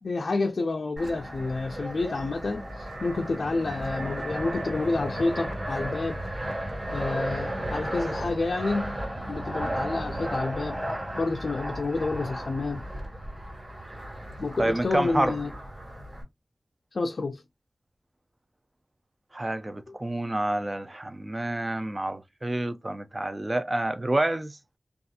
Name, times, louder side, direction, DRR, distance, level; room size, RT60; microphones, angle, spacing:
voice 1, 0.0-6.2 6.9-9.0 9.3-10.8 11.2-12.8 14.4-15.5 16.9-17.4, left 3 dB, 75° left, 0.3 m, -29 dB
Fixed-wing aircraft airplane, 1.0-16.2, right 1 dB, 50° right, 1.6 m, -34 dB
voice 2, 14.6-15.4 19.3-24.6, right 1 dB, 35° right, 0.4 m, -28 dB
2.7 x 2.3 x 2.4 m
wide cardioid pair, 70°, 0 cm